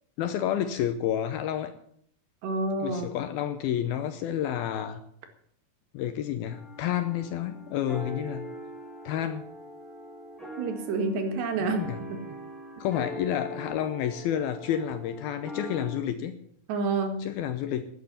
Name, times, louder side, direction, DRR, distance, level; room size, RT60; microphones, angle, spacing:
voice 1, 0.2-1.7 2.8-5.0 5.9-8.5 9.1-9.5 11.6-12.0 12.8-16.3 17.2-17.9, left 10 dB, 80° left, 10 dB, 2.3 m, -30 dB
voice 2, 2.4-3.1 10.6-11.8 16.7-17.2, right 3 dB, 75° right, 6 dB, 4.0 m, -28 dB
sound 1, 6.5-16.0, equal, ahead, 1.7 m, -41 dB
11.5 x 9.5 x 9.2 m, 0.66 s
omnidirectional pair, 5.0 m